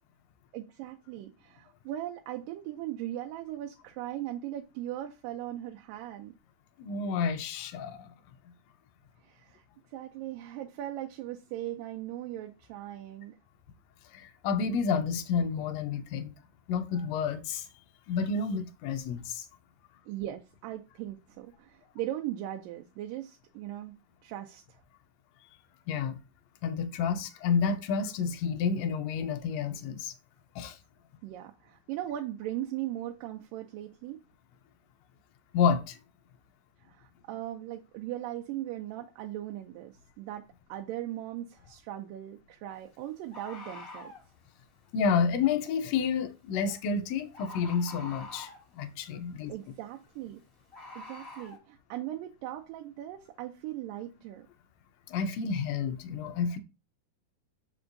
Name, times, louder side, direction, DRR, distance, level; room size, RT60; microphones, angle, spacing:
voice 1, 0.5-6.3 9.2-9.6 9.9-13.4 20.1-24.0 24.2-24.8 31.2-34.2 36.8-44.1 49.5-50.4 51.0-54.5, right 13 dB, 90° right, 2.3 m, -39 dB
voice 2, 6.8-8.1 14.1-16.3 16.7-17.7 18.1-19.5 25.9-26.2 26.6-30.1 30.5-30.8 35.5-36.0 44.9-49.5 55.1-56.6, left 6 dB, 75° left, 1.6 m, -30 dB
Bird, 41.6-41.7 43.3-44.3 46.5-46.8 47.3-48.7 50.7-51.6, left 2 dB, 30° left, 1.0 m, -45 dB
6.9 x 5.3 x 2.6 m
omnidirectional pair, 3.8 m